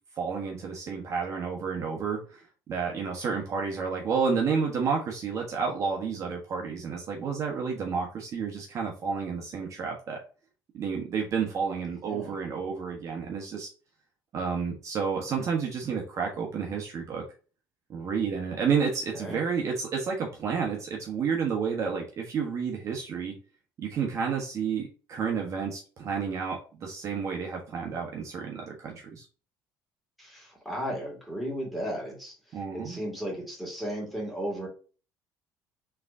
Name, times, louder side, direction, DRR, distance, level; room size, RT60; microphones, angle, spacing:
voice 1, 0.2-10.2 10.7-13.7 14.3-17.2 17.9-23.3 23.8-29.3 32.5-33.0, right 6 dB, 45° right, 0 dB, 1.1 m, -30 dB
voice 2, 12.0-12.4 19.1-19.4 30.2-32.3 32.7-34.7, equal, ahead, -2 dB, 2.3 m, -35 dB
4.6 x 3.6 x 2.7 m, 0.36 s
cardioid pair, 120°, 7 cm